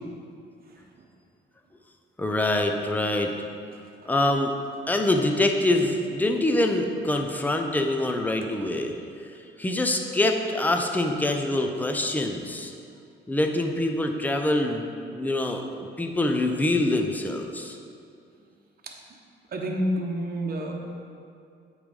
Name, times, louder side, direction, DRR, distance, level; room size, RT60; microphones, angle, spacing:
voice 1, 2.2-3.3 4.1-4.5 4.9-8.9 9.6-12.7 13.3-17.8, left 1 dB, 10° left, 4 dB, 0.6 m, -25 dB
voice 2, 19.5-20.7, equal, 50° right, 0 dB, 1.0 m, -28 dB
8.4 x 3.3 x 5.3 m, 2.4 s
cardioid pair, 90°, 20 cm